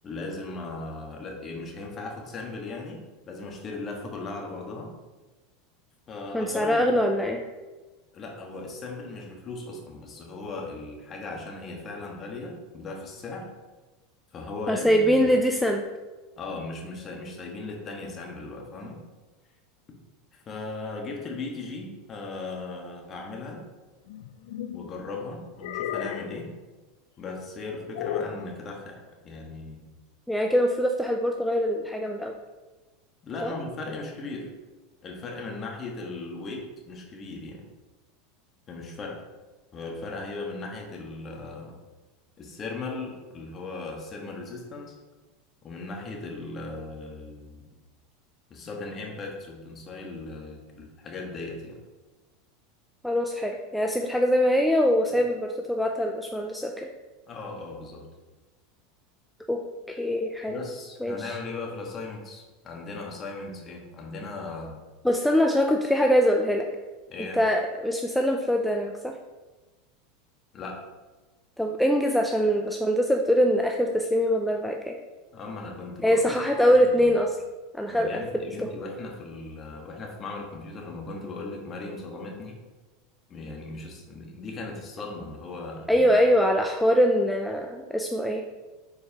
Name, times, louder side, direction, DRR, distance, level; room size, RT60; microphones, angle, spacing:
voice 1, 0.0-3.0 3.3-4.9 6.1-6.9 8.1-13.4 14.3-15.3 16.4-19.0 20.3-23.6 24.7-26.5 27.2-29.8 33.2-34.5 35.0-37.6 38.7-39.2 39.7-41.7 42.4-45.0 45.6-47.7 48.5-51.8 57.3-58.0 60.5-64.8 67.1-67.4 70.5-70.8 75.3-76.3 76.9-77.1 77.9-82.6 83.3-86.2, left 3 dB, 35° left, 0 dB, 1.4 m, -37 dB
voice 2, 6.3-7.4 14.7-15.8 30.3-32.3 33.4-33.5 53.0-56.9 59.5-59.6 59.9-60.5 61.0-61.3 65.0-66.7 67.3-69.1 71.6-75.0 76.0-77.4 77.7-78.1 78.6-78.7 85.9-88.4, equal, 5° left, 2 dB, 0.4 m, -23 dB
sound 1, 24.1-24.9 25.6-26.4 27.9-28.5, left 10 dB, 75° left, 0.4 m, -33 dB
7.2 x 4.6 x 2.9 m, 1.2 s
supercardioid pair, 115°, 0 cm